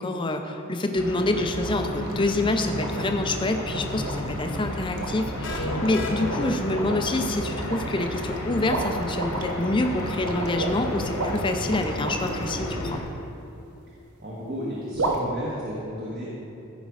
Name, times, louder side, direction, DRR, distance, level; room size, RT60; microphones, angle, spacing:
voice 1, 0.0-13.0, left 2 dB, 20° left, 5 dB, 0.5 m, -27 dB
sound 1, 1.0-13.0, left 1 dB, 80° left, 1.5 m, -33 dB
sound 2, 1.6-12.6 14.9-15.2, right 2 dB, 80° right, 1.0 m, -33 dB
sound 3, 5.4-7.4, left 2 dB, 55° left, 1.0 m, -32 dB
voice 2, 14.2-16.2, equal, 45° right, -6 dB, 1.5 m, -33 dB
14.5 x 5.2 x 4.8 m, 2.8 s
head